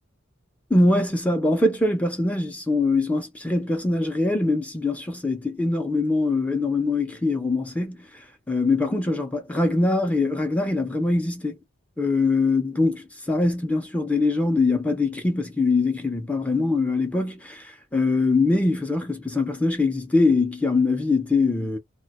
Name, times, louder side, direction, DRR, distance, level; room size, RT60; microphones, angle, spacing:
voice 1, 0.7-8.1 8.5-11.6 12.0-21.8, left 3 dB, 5° left, 0.4 m, -23 dB
2.1 x 2.1 x 2.7 m
head